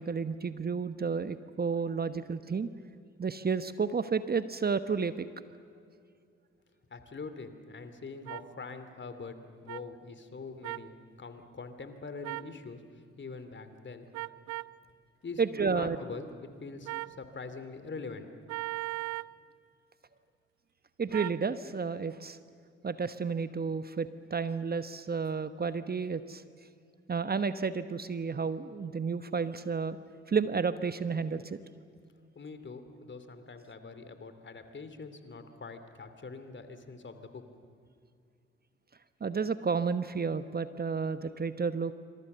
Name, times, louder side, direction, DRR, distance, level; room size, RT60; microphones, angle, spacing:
voice 1, 0.0-2.7 3.2-5.3 15.4-16.0 21.0-22.4 22.8-26.4 27.1-30.0 30.3-31.6 39.2-41.9, right 5 dB, 30° right, 12 dB, 1.1 m, -31 dB
voice 2, 6.9-14.1 15.2-18.3 32.3-37.4, left 4 dB, 40° left, 9 dB, 3.0 m, -44 dB
sound 1, 8.3-8.4 9.7-9.8 10.6-10.9 12.2-12.5 14.1-14.7 16.9-17.2 18.5-19.3 21.1-21.4, right 21 dB, 65° right, 0.6 m, -37 dB
28.0 x 26.0 x 6.9 m, 2.4 s
hypercardioid pair, 40°, 30 cm